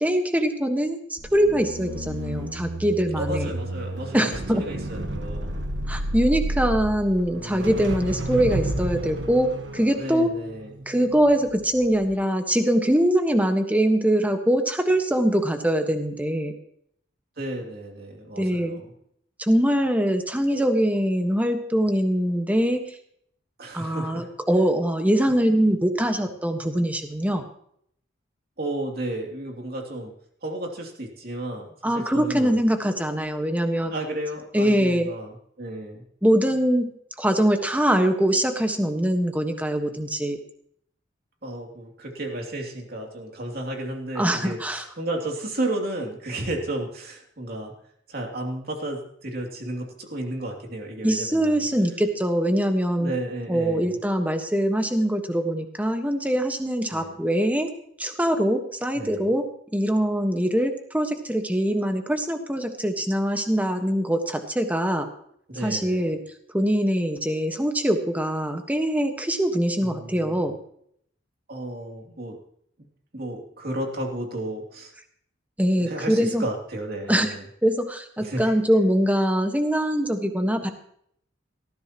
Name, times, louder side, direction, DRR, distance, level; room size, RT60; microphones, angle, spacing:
voice 1, 0.0-3.5 4.1-4.6 5.9-10.3 10.9-16.5 18.4-18.8 19.4-22.8 23.7-27.4 31.8-33.9 34.5-35.1 36.2-36.9 37.2-40.4 44.2-44.8 51.0-53.1 53.5-57.7 58.0-59.5 59.7-65.1 65.6-66.2 66.5-70.5 75.6-76.4 77.1-77.3 77.6-80.7, equal, 10° right, 5 dB, 1.4 m, -23 dB
sound 1, 1.2-11.5 11.8-12.1, right 1 dB, 75° right, 1.5 m, -31 dB
voice 2, 3.1-5.6 10.0-10.7 17.4-18.8 23.6-24.3 28.6-30.1 30.4-32.6 33.9-36.0 41.4-47.7 48.1-51.6 53.0-54.0 56.9-57.2 58.9-59.3 65.5-66.1 69.8-70.4 71.5-72.4 73.1-74.9 75.8-77.5 78.2-78.5, right 1 dB, 55° right, 1 dB, 2.9 m, -33 dB
19.0 x 14.5 x 3.0 m, 0.67 s
head